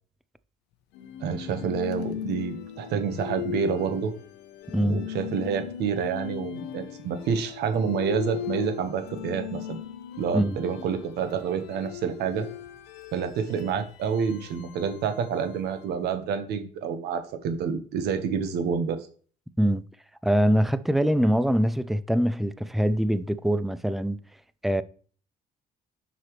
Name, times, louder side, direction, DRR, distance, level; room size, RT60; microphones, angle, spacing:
sound 1, 0.9-16.0, left 11 dB, 85° left, 0.7 m, -38 dB
voice 1, 1.2-4.1 4.8-9.8 10.2-12.5 13.1-19.1, right 6 dB, 75° right, 1.3 m, -28 dB
voice 2, 20.2-24.2 24.6-24.8, equal, ahead, 0.4 m, -23 dB
7.9 x 5.8 x 3.2 m
cardioid pair, 110°, 17 cm